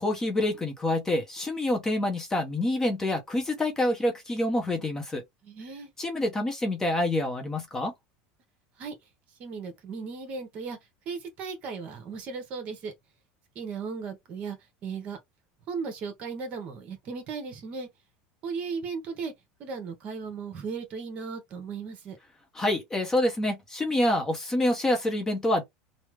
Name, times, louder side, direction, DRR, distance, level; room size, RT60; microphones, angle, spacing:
voice 1, 0.0-5.2 6.0-7.9 22.5-25.6, left 1 dB, 15° left, 0.7 m, -27 dB
voice 2, 5.4-5.9 8.8-8.9 9.4-10.8 11.1-12.9 13.5-14.6 14.8-15.2 15.7-17.9 18.4-19.3 19.6-22.2, right 5 dB, 40° right, 1.1 m, -36 dB
3.2 x 2.0 x 3.2 m
cardioid pair, 155°, 3 cm